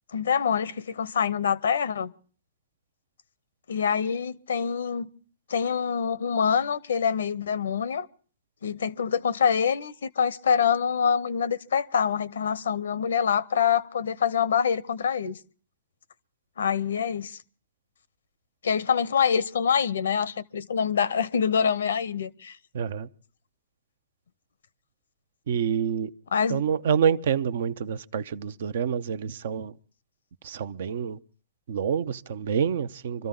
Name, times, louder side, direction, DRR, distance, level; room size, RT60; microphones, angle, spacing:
voice 1, 0.1-2.1 3.7-5.1 5.5-8.1 8.6-15.4 16.6-17.4 18.6-22.6 26.3-26.6, left 7 dB, 80° left, 0.8 m, -25 dB
voice 2, 22.7-23.1 25.5-26.1 26.5-29.7 30.4-31.2 31.7-33.3, right 7 dB, 65° right, 0.7 m, -27 dB
25.0 x 13.5 x 3.8 m
hypercardioid pair, 130°, 0 cm